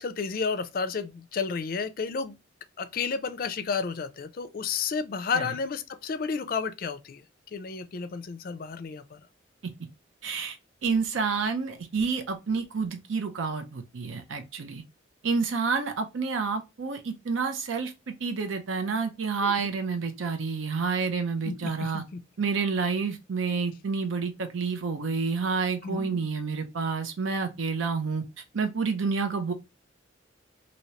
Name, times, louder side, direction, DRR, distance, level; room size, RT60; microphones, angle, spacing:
voice 1, 0.0-2.4 2.8-7.2 7.5-9.2 19.4-19.7 21.5-22.2 25.8-26.3, left 5 dB, 45° left, 0.4 m, -32 dB
voice 2, 10.2-10.6 10.8-14.8 15.2-17.9 18.2-22.0 22.4-28.2 28.5-29.5, right 5 dB, 80° right, 0.6 m, -29 dB
2.8 x 2.7 x 3.1 m
head